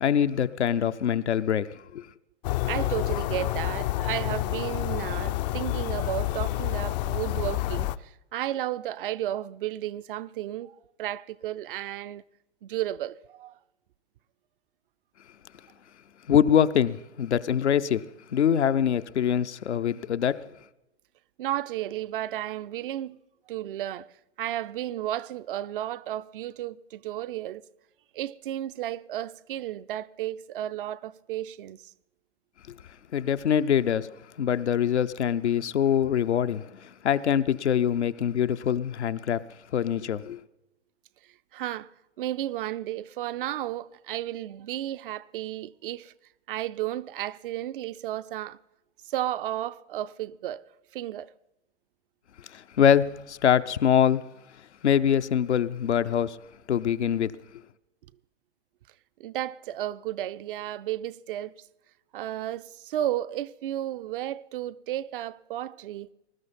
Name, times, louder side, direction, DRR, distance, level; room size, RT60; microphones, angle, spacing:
voice 1, 0.0-2.1 16.3-18.1 18.3-20.4 33.1-34.1 34.4-39.4 39.7-40.4 52.5-54.3 54.8-56.4 56.7-57.3, left 9 dB, 80° left, 0.7 m, -24 dB
sound 1, 2.4-8.0, left 16 dB, 40° left, 0.4 m, -29 dB
voice 2, 2.7-12.2 12.6-13.5 21.4-23.2 23.5-24.1 24.4-27.6 28.1-31.9 41.5-41.9 42.2-46.1 46.5-48.6 49.0-50.7 50.9-51.3 59.2-61.5 62.1-66.1, right 13 dB, 55° right, 0.5 m, -33 dB
20.0 x 12.5 x 4.2 m
figure-of-eight pair, 110°, 34 cm